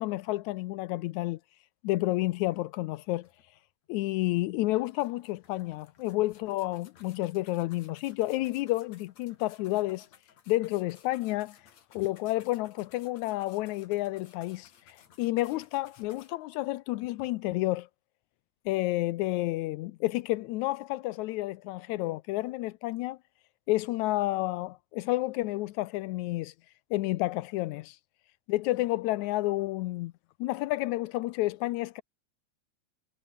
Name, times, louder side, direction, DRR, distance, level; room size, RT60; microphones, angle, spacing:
voice 1, 0.0-1.4 1.8-3.3 3.9-10.1 10.5-11.6 11.9-17.9 18.7-23.2 23.7-26.5 26.9-28.0 28.5-30.1 30.4-32.0, left 18 dB, 85° left, 2.0 m, -30 dB
sound 1, 2.5-2.6 2.9-3.9 4.3-4.4 4.8-16.3, left 8 dB, 65° left, 3.5 m, -59 dB
omnidirectional pair, 3.3 m